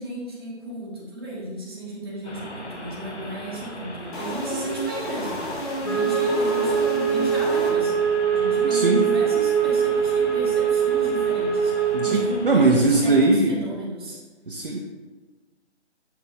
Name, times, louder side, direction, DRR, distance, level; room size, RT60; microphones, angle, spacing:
voice 1, 0.0-14.2 14.6-14.8, right 1 dB, 20° right, -5 dB, 1.1 m, -35 dB
sound 1, 2.2-13.3, left 1 dB, 70° left, 1.3 m, -39 dB
sound 2, 4.1-8.2, equal, 45° left, 1.5 m, -31 dB
Wind instrument woodwind instrument, 5.8-12.3, right 7 dB, 25° left, 0.6 m, -22 dB
voice 2, 8.6-9.0 11.9-13.6 14.5-14.8, right 2 dB, 50° right, -1 dB, 0.7 m, -20 dB
6.8 x 4.2 x 3.3 m, 1.3 s
figure-of-eight pair, 155°, 35 cm